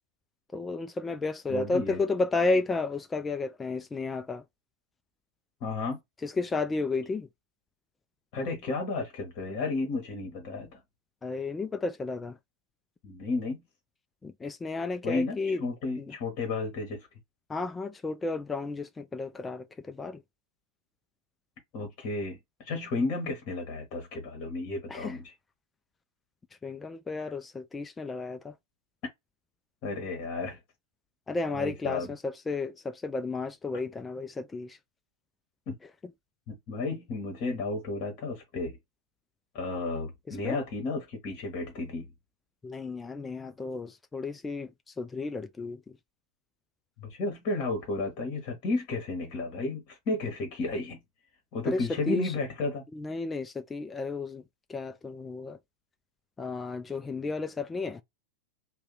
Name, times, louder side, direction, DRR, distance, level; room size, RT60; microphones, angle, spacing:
voice 1, 0.5-4.4 6.2-7.3 11.2-12.4 14.2-15.6 16.0-16.1 17.5-20.2 24.9-25.2 26.6-28.5 31.3-34.8 40.3-40.6 42.6-44.7 45.0-45.8 51.6-52.3 52.9-54.4 54.7-55.6 56.4-58.0, left 3 dB, 15° left, 0.3 m, -32 dB
voice 2, 1.5-2.0 5.6-6.0 8.3-10.8 13.0-13.6 15.0-17.1 21.7-25.3 27.2-27.3 29.8-30.6 31.5-32.1 35.7-35.8 36.5-38.8 39.5-42.1 47.0-51.0 51.5-52.8, left 3 dB, 40° left, 1.0 m, -33 dB
2.7 x 2.1 x 3.8 m
figure-of-eight pair, 90°, 0 cm